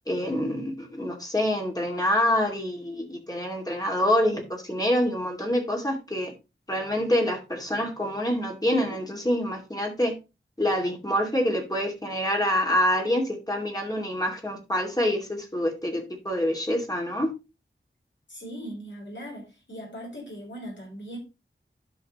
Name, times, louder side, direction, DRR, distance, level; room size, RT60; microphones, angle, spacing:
voice 1, 0.1-6.3 6.7-10.1 10.6-17.3, equal, 20° left, 2.6 m, -26 dB
voice 2, 18.3-21.2, equal, 60° left, 4.2 m, -39 dB
12.5 x 5.0 x 3.1 m
wide cardioid pair, 65°, 21 cm